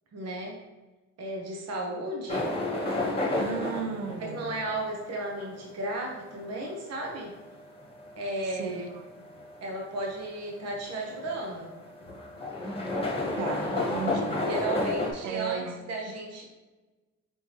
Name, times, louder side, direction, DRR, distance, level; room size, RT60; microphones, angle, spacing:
voice 1, 0.1-0.6 1.2-2.5 4.3-7.3 8.2-8.9 9.6-11.7 14.5-15.6 15.9-16.4, right 1 dB, 60° right, 0 dB, 1.0 m, -34 dB
sound 1, 2.3-15.1, left 2 dB, 20° left, 1.2 m, -32 dB
voice 2, 3.4-4.5 8.6-9.0 13.4-14.4 15.2-15.8 16.1-16.2, right 6 dB, 80° right, 7 dB, 0.6 m, -35 dB
4.5 x 3.5 x 2.8 m, 1.2 s
cardioid pair, 90°, 30 cm